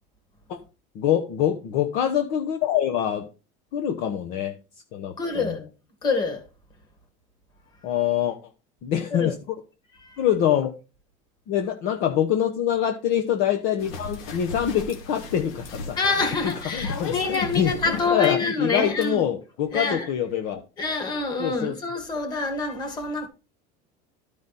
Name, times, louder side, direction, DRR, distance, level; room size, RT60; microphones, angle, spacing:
voice 1, 0.9-3.2 3.7-4.5 4.9-5.5 7.8-8.4 8.8-9.3 10.2-10.7 11.5-16.0 16.7-20.6 21.4-21.7, left 10 dB, 50° left, 0.9 m, -25 dB
voice 2, 5.2-5.6 6.0-6.4 9.2-9.3 10.0-10.2 16.0-19.2 19.7-20.1 20.8-23.3, left 4 dB, 25° left, 1.9 m, -26 dB
sound 1, 13.8-18.3 19.0-19.1, left 3 dB, 85° left, 2.4 m, -35 dB
12.5 x 5.1 x 4.1 m
cardioid pair, 180°, 18 cm